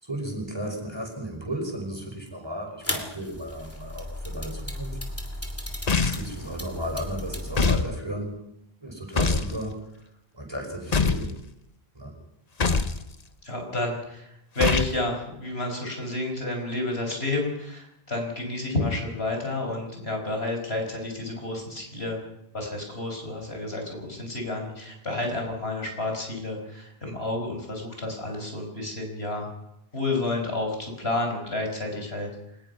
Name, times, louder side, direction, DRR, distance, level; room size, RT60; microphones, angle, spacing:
voice 1, 0.0-5.0 5.9-8.4 8.8-9.9 10.3-11.4 11.9-12.1, right 1 dB, 25° right, 2 dB, 5.7 m, -34 dB
sound 1, 2.8-7.8, left 1 dB, 15° left, 2.9 m, -35 dB
sound 2, 5.9-6.4 7.6-7.9 9.2-9.5 10.9-11.3 12.6-13.0 14.6-15.0, left 4 dB, 40° left, 1.1 m, -23 dB
voice 2, 13.4-22.2 22.5-29.5 29.9-32.3, left 2 dB, 75° left, 2 dB, 6.0 m, -30 dB
24.0 x 19.5 x 5.8 m, 0.81 s
omnidirectional pair, 1.1 m